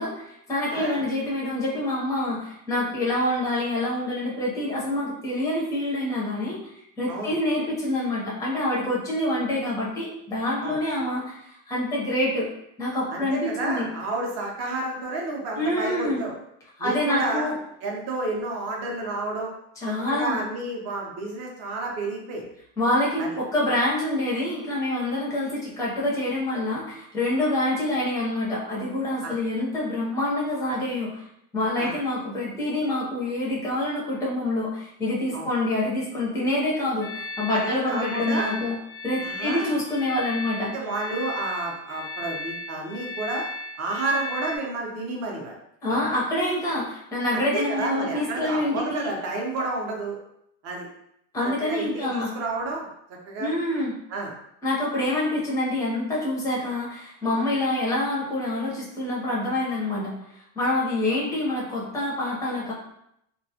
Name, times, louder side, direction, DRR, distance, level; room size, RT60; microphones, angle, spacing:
voice 1, 0.0-12.5 12.8-13.9 15.6-16.2 16.8-17.6 19.8-20.4 22.8-31.2 31.5-38.8 39.0-40.7 45.8-49.1 51.3-52.3 53.4-53.9 54.6-60.1 60.6-62.7, left 1 dB, 10° left, -6 dB, 0.5 m, -26 dB
voice 2, 0.7-1.0 7.1-7.4 10.6-10.8 13.1-16.3 16.8-17.5 17.8-19.5 19.9-22.5 23.2-23.4 29.2-29.3 31.8-32.0 35.3-35.5 37.5-38.5 39.2-39.8 40.6-43.5 43.8-45.5 47.3-50.2 50.6-50.9 51.6-52.9 53.3-53.5 54.1-54.3, right 2 dB, 35° right, -1 dB, 0.6 m, -30 dB
sound 1, 37.0-44.6, left 2 dB, 65° left, 0.6 m, -36 dB
2.2 x 2.0 x 2.7 m, 0.75 s
supercardioid pair, 135°, 44 cm